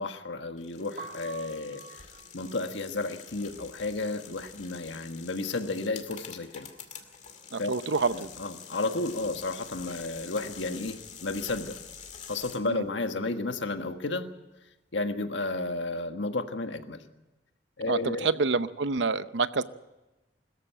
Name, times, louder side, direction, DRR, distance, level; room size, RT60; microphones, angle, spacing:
voice 1, 0.0-2.0 2.3-6.7 7.6-7.7 8.1-11.8 12.3-14.3 14.9-17.0 17.8-18.3, left 3 dB, 85° left, 7 dB, 1.6 m, -32 dB
sound 1, 0.6-12.6, left 7 dB, 40° left, 2.3 m, -47 dB
Piano, 0.8-6.8 7.0-8.6 8.9-15.3, right 4 dB, 40° right, 3.1 m, -51 dB
voice 2, 7.5-8.3 12.6-12.8 17.9-19.6, right 4 dB, 75° right, 14 dB, 0.8 m, -27 dB
21.5 x 14.0 x 8.9 m, 1.0 s
head